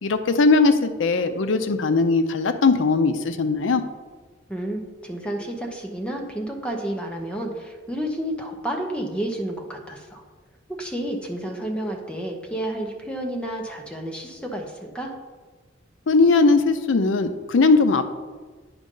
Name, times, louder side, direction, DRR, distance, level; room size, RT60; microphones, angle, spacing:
voice 1, 0.0-3.8 16.1-18.1, left 3 dB, 75° left, 10 dB, 0.5 m, -19 dB
voice 2, 4.5-10.2 10.8-15.1, right 1 dB, 5° left, 1 dB, 0.9 m, -30 dB
9.5 x 5.2 x 3.8 m, 1.4 s
head